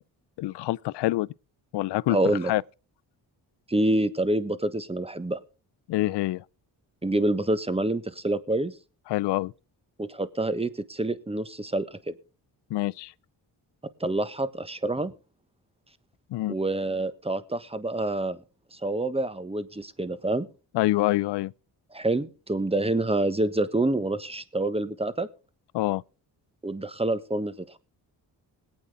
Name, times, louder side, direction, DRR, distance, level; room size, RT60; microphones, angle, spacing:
voice 1, 0.4-1.3 1.7-2.2 2.4-2.6 5.9-6.4 9.1-9.5 12.7-13.1 16.3-16.5 20.7-21.5 25.7-26.0, left 17 dB, 70° left, 0.5 m, -26 dB
voice 2, 2.1-2.5 3.7-5.4 7.0-8.7 10.0-12.1 14.0-15.1 16.5-18.4 18.7-20.5 21.9-25.3 26.6-27.8, right 2 dB, 15° right, 1.2 m, -27 dB
20.5 x 8.7 x 3.5 m
cardioid pair, 65°, 44 cm